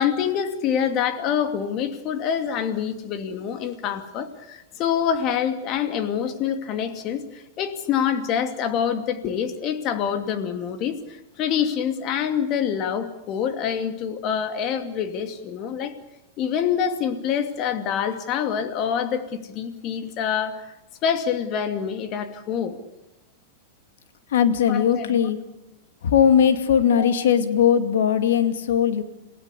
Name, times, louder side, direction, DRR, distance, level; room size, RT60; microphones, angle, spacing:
voice 1, 0.0-15.9 16.4-20.7 21.0-22.8 24.7-25.3 27.0-27.2, left 8 dB, 40° left, 8 dB, 2.6 m, -26 dB
voice 2, 24.3-25.4 26.0-29.0, left 8 dB, 75° left, 9 dB, 2.3 m, -19 dB
28.0 x 17.5 x 8.4 m, 0.96 s
hypercardioid pair, 120°, 0 cm